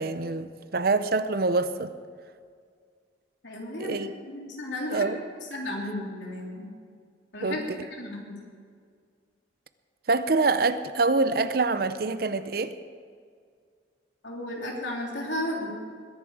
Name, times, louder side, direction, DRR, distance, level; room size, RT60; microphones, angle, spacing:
voice 1, 0.0-1.9 3.8-4.1 4.9-5.2 7.4-7.8 10.1-12.8, right 3 dB, 55° right, 12 dB, 0.7 m, -25 dB
voice 2, 3.4-4.0 4.3-5.1 5.5-6.7 7.3-7.6 8.0-8.4 14.2-15.7, left 1 dB, 80° left, -1 dB, 3.1 m, -33 dB
21.0 x 11.0 x 4.8 m, 2.1 s
head